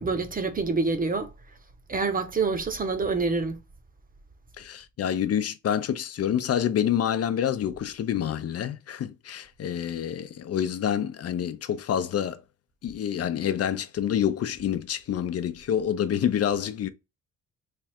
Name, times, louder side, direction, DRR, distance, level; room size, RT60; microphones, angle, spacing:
voice 1, 0.0-1.3 1.9-3.6, right 4 dB, 30° right, 0.8 m, -26 dB
voice 2, 4.6-12.4 12.8-16.9, left 9 dB, 55° left, 0.6 m, -27 dB
3.4 x 2.3 x 4.3 m
cardioid pair, 90°, 30 cm